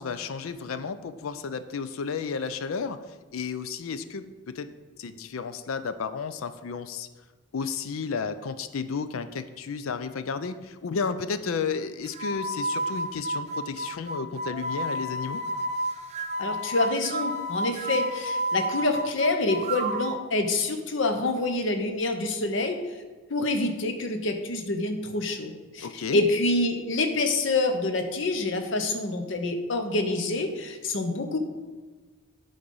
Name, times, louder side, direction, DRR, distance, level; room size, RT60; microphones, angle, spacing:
voice 1, 0.0-3.0 3.3-4.7 5.0-7.1 7.5-15.4 25.8-26.3, left 5 dB, 80° left, 12 dB, 0.4 m, -32 dB
sound 1, 12.0-20.2, right 1 dB, 30° right, 0.6 m, -31 dB
voice 2, 16.4-23.0 23.3-31.4, left 2 dB, 60° left, 6 dB, 0.8 m, -27 dB
9.8 x 3.9 x 5.4 m, 1.3 s
head